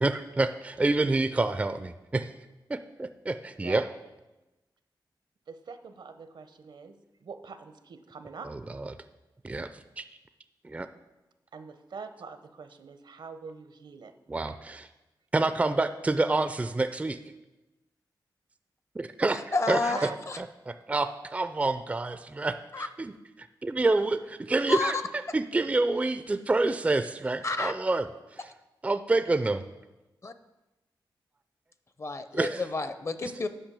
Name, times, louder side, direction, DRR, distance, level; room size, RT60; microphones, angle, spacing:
voice 1, 0.0-2.3 2.7-3.8 8.7-8.9 9.4-9.7 10.0-10.1 10.6-10.9 14.3-14.9 15.3-17.2 19.0-19.4 19.7-19.8 20.4-23.1 23.4-25.0 25.3-28.1 28.8-29.6 32.3-32.6, right 2 dB, 20° right, 10 dB, 0.3 m, -27 dB
voice 2, 5.5-8.5 11.5-14.1 19.9-20.2, right 5 dB, 75° right, 9 dB, 0.8 m, -44 dB
voice 3, 19.3-20.4 22.7-22.9 24.7-25.0 27.4-27.7 30.2-30.3 32.0-33.5, left 3 dB, 35° left, 11 dB, 0.6 m, -30 dB
8.9 x 5.3 x 6.8 m, 1.1 s
wide cardioid pair, 110°, 8 cm